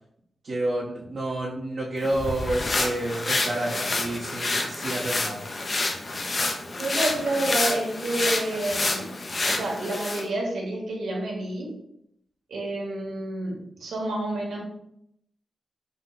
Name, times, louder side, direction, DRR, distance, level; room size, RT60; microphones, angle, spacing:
voice 1, 0.4-5.4, right 1 dB, 55° right, -8 dB, 1.0 m, -29 dB
sound 1, 2.0-10.3, left 2 dB, 40° left, 0.5 m, -28 dB
voice 2, 6.8-9.1 9.5-11.7 12.5-14.6, right 2 dB, 90° right, -2 dB, 1.3 m, -29 dB
5.4 x 2.2 x 3.9 m, 0.77 s
wide cardioid pair, 125°, 0 cm